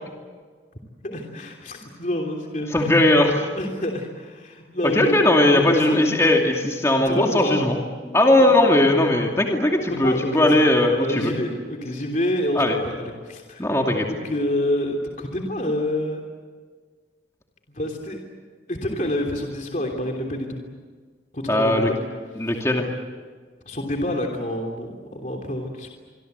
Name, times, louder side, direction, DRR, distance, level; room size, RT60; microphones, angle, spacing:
voice 1, 1.0-3.0 3.5-6.0 7.0-7.6 8.0-8.3 8.6-8.8 9.9-13.7 14.1-16.2 17.7-18.2 18.7-20.6 21.3-22.0 22.4-22.6 23.6-25.9, left 1 dB, 45° left, 2 dB, 3.2 m, -28 dB
voice 2, 2.7-3.5 4.9-7.7 8.1-11.3 12.6-12.7 13.6-14.1 21.5-21.9 22.4-22.9, left 1 dB, 15° left, 1 dB, 2.5 m, -18 dB
26.5 x 24.0 x 8.2 m, 1.5 s
head